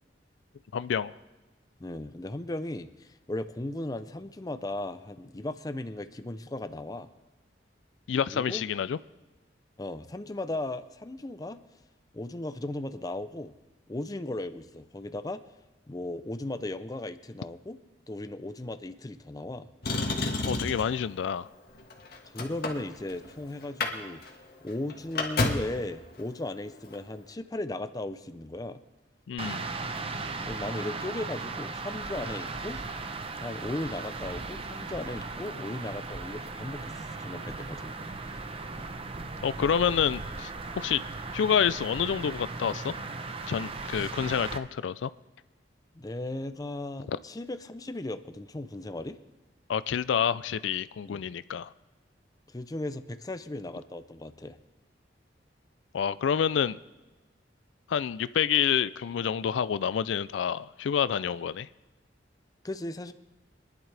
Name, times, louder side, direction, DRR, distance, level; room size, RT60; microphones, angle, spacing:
voice 1, 0.7-1.1 8.1-9.0 20.5-21.5 29.3-29.7 39.4-40.5 40.8-41.0 41.3-42.9 43.5-45.1 47.1-47.2 49.7-51.7 55.9-56.8 57.9-61.7, left 8 dB, 90° left, 0.4 m, -28 dB
voice 2, 1.8-7.1 8.3-8.6 9.8-11.6 12.1-13.5 13.9-15.4 15.9-17.8 18.1-19.7 22.2-24.2 24.6-28.8 30.5-32.8 33.4-37.9 43.9-44.1 45.9-49.2 51.1-51.2 52.5-54.6 62.6-63.1, left 1 dB, 20° left, 0.5 m, -36 dB
Motor vehicle (road), 19.8-21.0 21.8-23.3 23.6-23.9 24.2-24.3 24.7-25.8 26.8-27.0, left 3 dB, 55° left, 1.6 m, -30 dB
sound 1, 29.4-44.6, right 3 dB, 30° right, 0.7 m, -37 dB
24.5 x 10.5 x 3.3 m
head